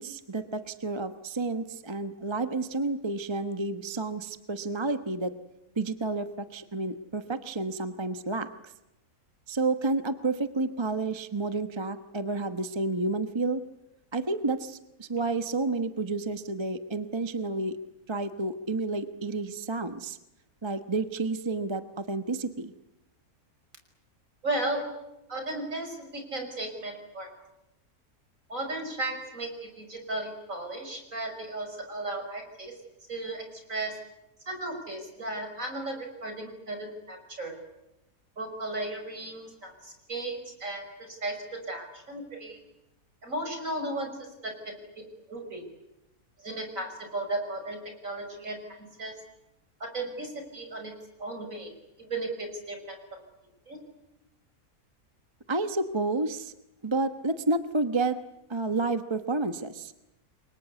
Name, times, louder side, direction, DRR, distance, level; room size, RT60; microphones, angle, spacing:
voice 1, 0.0-5.3 5.8-8.5 9.5-13.6 14.1-17.8 18.1-20.2 20.6-22.7 55.5-56.5 56.8-58.2 58.5-59.9, right 3 dB, 20° right, 9 dB, 1.0 m, -30 dB
voice 2, 24.4-24.8 25.3-27.3 28.5-32.7 33.1-33.4 33.7-33.9 34.5-37.6 38.4-42.6 43.2-44.1 44.4-45.0 45.3-45.6 46.4-49.1 49.8-50.9 51.2-51.7 52.0-53.2 53.7-53.8, right 2 dB, 60° right, 5 dB, 6.3 m, -35 dB
29.5 x 24.0 x 8.3 m, 0.91 s
omnidirectional pair, 1.6 m